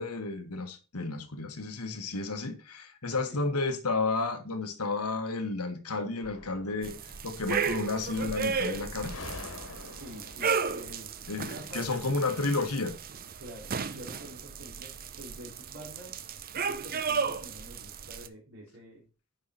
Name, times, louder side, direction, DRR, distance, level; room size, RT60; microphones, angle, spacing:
voice 1, 0.0-9.1 11.3-13.0, left 3 dB, 90° left, 1.5 m, -32 dB
sound 1, 6.2-7.4 9.0-11.8, left 2 dB, 70° left, 1.7 m, -46 dB
sound 2, 6.8-18.3, right 5 dB, 40° right, 0.6 m, -34 dB
voice 2, 9.8-11.9 13.4-16.2 16.5-19.0, equal, 60° right, 3.1 m, -47 dB
9.6 x 5.7 x 4.2 m
head